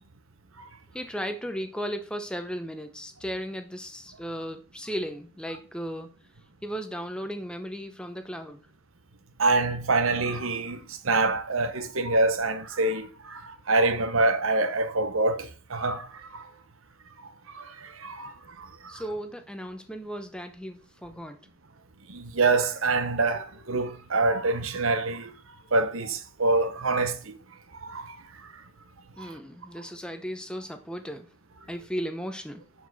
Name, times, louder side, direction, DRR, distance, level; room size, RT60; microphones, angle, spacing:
voice 1, 0.9-6.1 6.6-8.7 18.9-21.4 29.2-31.3 31.7-32.6, equal, 5° left, 0.8 m, -35 dB
voice 2, 9.4-16.4 17.5-19.0 22.1-25.3 25.7-27.3 27.8-28.2 29.2-29.3, right 3 dB, 80° right, 1.0 m, -26 dB
11.0 x 4.7 x 4.1 m
head